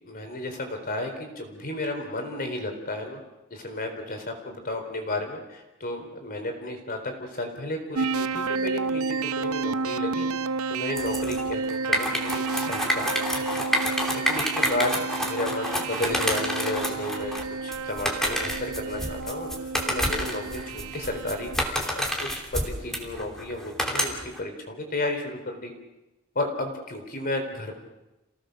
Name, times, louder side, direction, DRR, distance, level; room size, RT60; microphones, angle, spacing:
voice 1, 0.0-3.2 3.5-10.3 10.7-13.6 14.2-17.3 17.6-19.5 19.9-21.5 21.7-21.8 22.2-25.7 26.4-27.8, left 1 dB, 45° left, 4 dB, 4.1 m, -33 dB
sound 1, 7.9-21.6, right 4 dB, 75° right, 0.7 m, -31 dB
sound 2, 11.0-24.4, equal, ahead, 3.0 m, -29 dB
28.5 x 18.0 x 6.6 m, 1.0 s
head